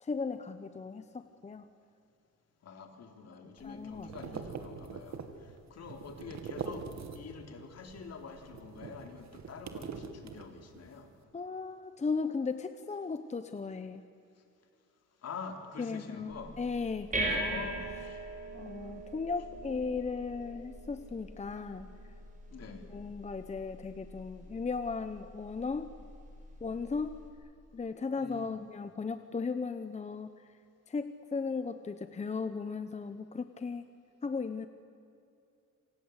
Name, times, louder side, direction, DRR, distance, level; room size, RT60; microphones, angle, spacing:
voice 1, 0.0-1.7 3.6-4.1 11.3-14.0 15.8-17.7 18.5-21.9 22.7-25.9 26.6-27.2 27.7-30.3 30.9-33.8 34.2-34.7, left 4 dB, 20° left, 10 dB, 0.9 m, -36 dB
voice 2, 2.6-6.9 7.1-11.1 15.2-16.5 17.2-18.2 22.5-22.9 28.2-28.6, left 5 dB, 55° left, 5 dB, 3.7 m, -46 dB
sound 1, 3.6-7.5 7.8-10.9, right 6 dB, 60° right, 2.5 m, -43 dB
sound 2, 16.3-27.3, right 2 dB, 25° right, 6.0 m, -41 dB
27.5 x 26.0 x 8.2 m, 2.7 s
cardioid pair, 150°, 31 cm